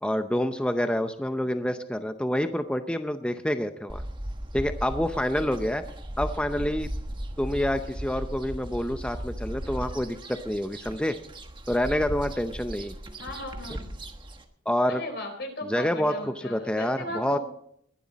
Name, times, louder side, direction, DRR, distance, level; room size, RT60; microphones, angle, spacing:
voice 1, 0.0-4.0 4.5-5.8 6.2-6.9 7.4-11.2 11.7-12.9 14.7-15.0 15.6-17.4, left 1 dB, 5° left, 8 dB, 0.6 m, -27 dB
sound 1, 3.9-14.4, right 1 dB, 25° right, 1.3 m, -37 dB
voice 2, 13.2-13.9 14.9-17.4, left 1 dB, 60° left, 4 dB, 4.2 m, -36 dB
21.0 x 11.5 x 4.1 m, 0.69 s
head